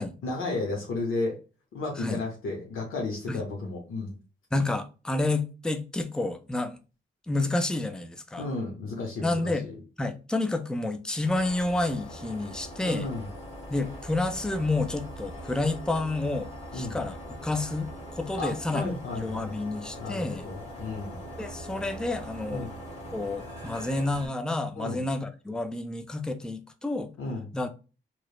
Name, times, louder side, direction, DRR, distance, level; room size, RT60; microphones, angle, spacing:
voice 1, 0.2-1.4 1.7-4.2 8.4-9.7 12.8-13.3 16.7-17.0 18.4-19.5 20.0-21.2 22.5-22.7 24.7-25.0 27.2-27.5, left 3 dB, 80° left, 0.7 m, -33 dB
voice 2, 4.5-6.8 7.3-8.4 9.2-9.7 10.0-13.1 13.7-18.9 19.1-20.4 21.4-22.7 23.1-27.1 27.5-27.7, left 2 dB, 5° left, 0.4 m, -30 dB
sound 1, 11.2-24.3, equal, 30° left, 1.2 m, -42 dB
2.9 x 2.0 x 2.2 m
cardioid pair, 60°, 21 cm